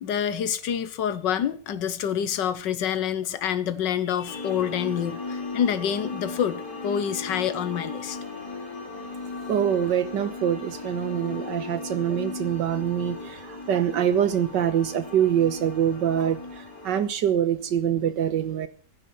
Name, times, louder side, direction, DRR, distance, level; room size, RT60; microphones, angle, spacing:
voice 1, 0.0-8.2, left 9 dB, 90° left, 1.7 m, -27 dB
sound 1, 4.3-17.0, left 3 dB, 65° left, 4.9 m, -37 dB
voice 2, 9.5-18.7, right 9 dB, 90° right, 1.8 m, -25 dB
15.0 x 9.7 x 7.0 m
omnidirectional pair, 1.9 m